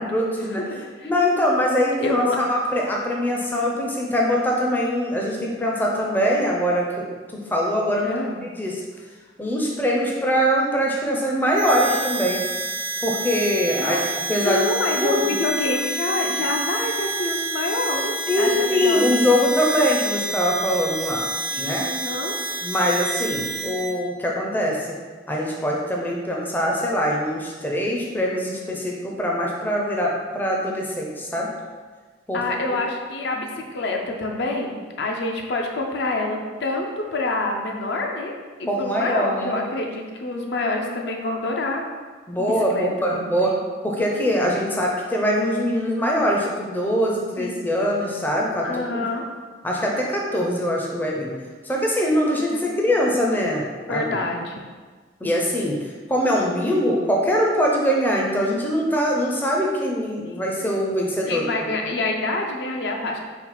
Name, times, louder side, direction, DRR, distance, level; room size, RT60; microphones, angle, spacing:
voice 1, 0.1-0.6 1.0-7.1 7.3-8.2 8.6-8.8 9.4-12.4 13.0-14.0 14.3-14.7 14.9-15.4 18.3-21.3 21.6-21.9 22.6-24.9 25.3-31.5 32.3-32.4 38.7-39.6 42.3-43.5 43.8-49.0 49.6-51.3 51.6-53.6 53.9-54.2 55.2-55.8 56.1-61.4, equal, 10° left, -2 dB, 0.4 m, -23 dB
voice 2, 0.7-1.1 2.0-2.4 8.0-8.4 13.8-14.0 14.4-19.1 21.5-22.4 23.6-23.8 32.3-38.3 38.6-41.9 42.4-43.6 47.4-47.5 48.6-49.2 52.5-52.6 53.9-54.6 60.2-60.4 61.3-63.2, left 2 dB, 65° left, 1 dB, 0.5 m, -27 dB
Harmonica, 11.5-24.0, right 2 dB, 70° right, 0.4 m, -28 dB
4.2 x 2.3 x 4.1 m, 1.4 s
head